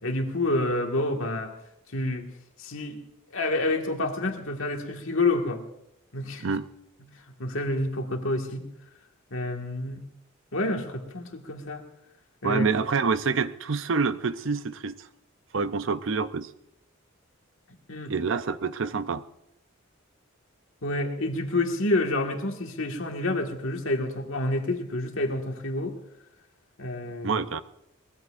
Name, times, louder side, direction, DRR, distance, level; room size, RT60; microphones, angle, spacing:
voice 1, 0.0-1.5 1.9-2.2 2.6-3.0 3.3-5.6 6.1-6.5 7.3-8.7 9.3-10.0 10.5-11.8 12.4-12.7 17.9-18.1 20.8-26.0 26.8-27.4, left 2 dB, 65° left, 3 dB, 1.8 m, -28 dB
voice 2, 12.4-15.1 15.5-16.5 18.1-19.2 27.2-27.6, right 5 dB, 60° right, 13 dB, 0.6 m, -27 dB
22.5 x 19.5 x 2.6 m, 0.82 s
head